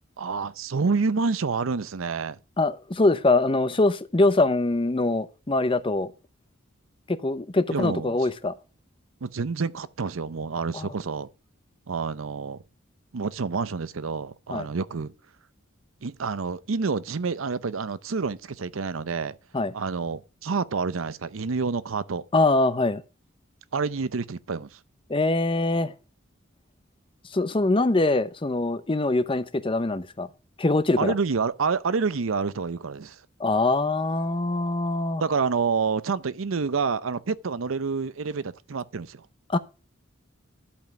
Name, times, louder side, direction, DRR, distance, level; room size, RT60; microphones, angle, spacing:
voice 1, 0.2-2.4 7.7-8.2 9.2-11.3 11.9-12.6 13.1-15.1 16.0-19.3 19.7-22.2 23.7-24.8 31.0-33.2 35.2-39.2, right 5 dB, 90° right, 0.6 m, -28 dB
voice 2, 2.6-6.1 7.1-8.5 10.7-10.9 14.5-14.7 19.5-19.7 22.3-23.0 25.1-25.9 27.3-30.3 30.6-31.1 33.4-35.2 39.5-39.6, left 2 dB, 25° left, 0.7 m, -23 dB
11.5 x 5.3 x 6.0 m
head